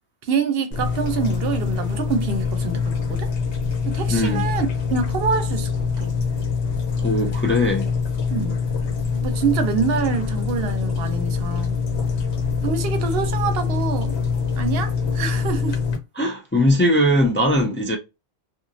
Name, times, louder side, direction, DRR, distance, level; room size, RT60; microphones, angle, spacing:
voice 1, 0.2-3.3 3.8-5.7 6.0-6.1 8.3-8.6 9.1-11.8 12.6-14.2 14.6-15.8, right 6 dB, 70° right, 0.7 m, -26 dB
sound 1, 0.7-16.0, left 5 dB, 90° left, 1.0 m, -24 dB
voice 2, 4.1-4.5 7.0-7.9 16.2-18.0, left 1 dB, 20° left, 0.3 m, -20 dB
2.9 x 2.4 x 2.6 m
omnidirectional pair, 1.1 m